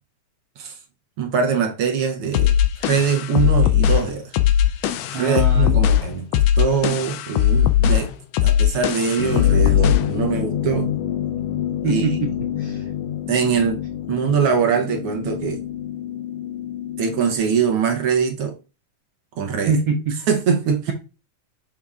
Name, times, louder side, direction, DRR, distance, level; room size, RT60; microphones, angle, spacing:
voice 1, 1.2-4.3 5.1-8.1 8.4-10.9 11.8-12.1 13.3-13.8 14.1-15.6 17.0-18.6 19.4-19.8 20.3-20.8, right 6 dB, 70° right, 1.4 m, -22 dB
sound 1, 2.3-10.2, left 10 dB, 80° left, 1.5 m, -19 dB
voice 2, 5.1-5.9 11.8-12.3 12.6-12.9 19.7-20.2, right 4 dB, 85° right, 1.0 m, -23 dB
sound 2, 9.2-17.4, left 10 dB, 65° left, 1.8 m, -27 dB
7.1 x 5.9 x 2.4 m
omnidirectional pair, 3.4 m